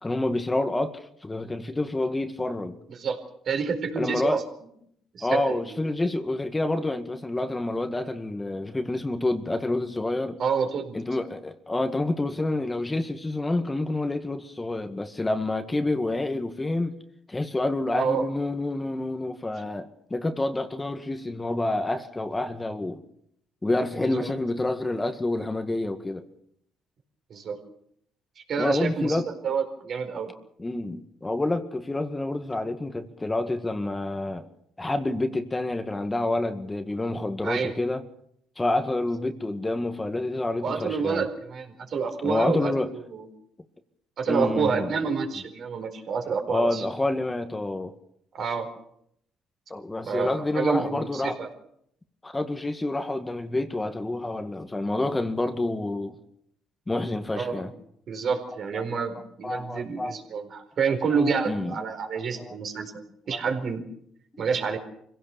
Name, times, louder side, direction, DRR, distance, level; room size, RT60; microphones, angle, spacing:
voice 1, 0.0-2.8 4.0-4.4 5.2-10.4 10.9-17.0 17.3-23.0 23.6-26.2 28.6-29.3 30.6-34.5 34.8-38.0 38.6-41.3 42.2-42.9 44.3-44.9 46.5-47.9 49.7-51.4 52.2-56.1 56.9-57.7 58.7-59.0 59.4-60.2 60.8-61.7 62.4-62.5 63.3-63.4, left 2 dB, 20° left, 1.9 m, -28 dB
voice 2, 3.5-4.4 5.1-5.6 10.4-11.0 17.9-18.3 24.0-24.3 27.3-27.6 28.4-30.3 37.4-37.7 40.6-43.3 44.2-46.8 48.3-48.7 50.0-51.5 57.4-57.7 58.1-62.9 63.3-63.8 64.4-64.8, right 5 dB, 55° right, 4.5 m, -28 dB
24.5 x 17.0 x 7.0 m
supercardioid pair, 75°, 0 cm